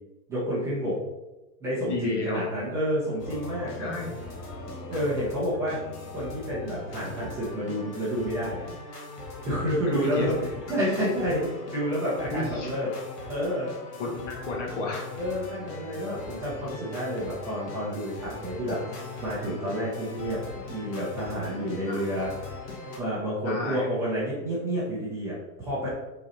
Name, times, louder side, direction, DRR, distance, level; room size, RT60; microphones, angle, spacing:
voice 1, 0.3-1.0 1.6-3.9 4.9-5.8 6.1-8.7 9.4-12.9 13.2-13.7 15.1-18.8 19.2-22.3 23.0-25.9, equal, 5° right, -11 dB, 0.7 m, -29 dB
voice 2, 1.9-2.5 3.8-4.2 9.9-10.3 12.3-12.7 14.0-15.1 21.9-22.1 23.4-23.9, left 2 dB, 45° left, 0 dB, 1.5 m, -32 dB
sound 1, 3.2-23.0, left 3 dB, 70° left, 2.0 m, -40 dB
6.0 x 4.0 x 4.3 m, 1.1 s
supercardioid pair, 170°, 49 cm